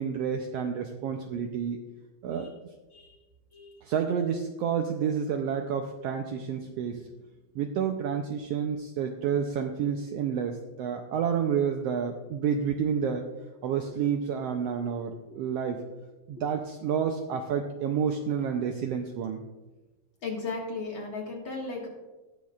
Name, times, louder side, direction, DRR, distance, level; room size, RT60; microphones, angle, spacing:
voice 1, 0.0-1.8 2.2-2.5 3.8-7.1 7.5-13.2 13.6-15.8 16.3-19.4, right 7 dB, 80° right, 4 dB, 1.4 m, -29 dB
voice 2, 20.2-21.9, left 3 dB, 45° left, -2 dB, 2.2 m, -36 dB
19.0 x 6.4 x 2.4 m, 1.1 s
omnidirectional pair, 3.3 m